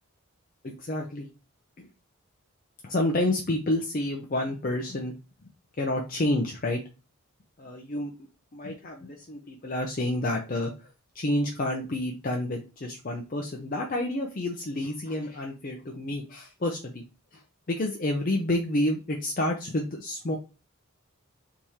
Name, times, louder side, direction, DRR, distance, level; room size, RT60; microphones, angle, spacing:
voice 1, 0.6-1.3 1.8-1.9 2.8-5.1 5.8-6.8 7.6-8.1 8.5-17.0 17.3-17.4 17.7-20.4, left 1 dB, 40° left, 1 dB, 0.5 m, -29 dB
3.5 x 3.1 x 4.1 m, 0.30 s
head